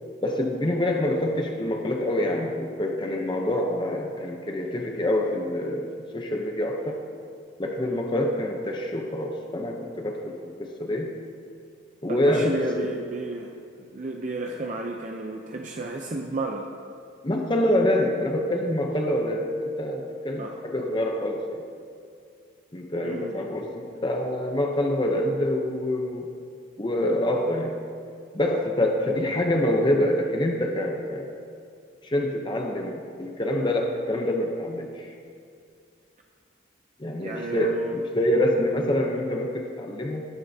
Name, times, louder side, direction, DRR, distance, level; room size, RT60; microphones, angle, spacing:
voice 1, 0.2-7.0 7.6-11.1 12.0-12.6 17.2-21.6 22.7-26.3 26.8-27.8 28.3-31.4 32.0-35.1 37.0-40.3, left 1 dB, 25° left, 2 dB, 0.7 m, -26 dB
voice 2, 12.1-13.5 13.9-16.7 20.4-20.5 23.0-23.4 37.2-38.0, right 2 dB, 40° right, 1 dB, 0.6 m, -32 dB
18.5 x 9.3 x 2.8 m, 2.3 s
head